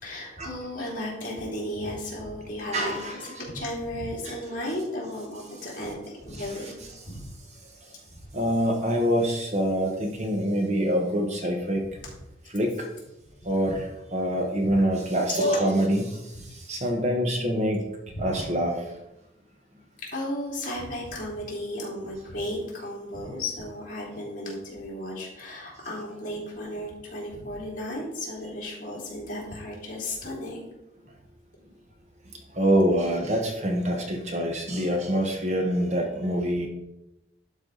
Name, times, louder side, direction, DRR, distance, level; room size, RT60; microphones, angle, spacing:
voice 1, 0.0-6.7 7.1-7.2 12.0-12.1 14.6-14.7 15.3-15.4 18.1-18.3 20.1-30.7, left 1 dB, 45° left, -5 dB, 3.2 m, -34 dB
voice 2, 2.7-3.1 8.3-11.8 12.5-12.9 13.4-13.8 14.1-16.2 16.7-17.8 18.2-18.8 32.5-36.7, equal, 40° right, 2 dB, 1.2 m, -25 dB
11.5 x 4.8 x 3.9 m, 0.91 s
head